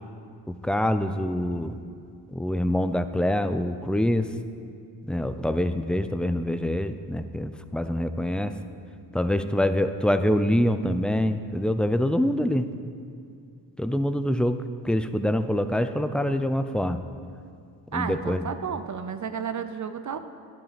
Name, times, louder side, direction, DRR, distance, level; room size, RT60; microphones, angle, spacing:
voice 1, 0.5-1.8 2.3-4.3 5.1-8.5 9.1-12.7 13.8-17.0 17.9-18.5, left 1 dB, ahead, 10 dB, 0.5 m, -25 dB
voice 2, 17.9-20.2, right 7 dB, 40° right, 9 dB, 0.6 m, -32 dB
10.5 x 7.4 x 5.1 m, 2.4 s
supercardioid pair, 45°, 44 cm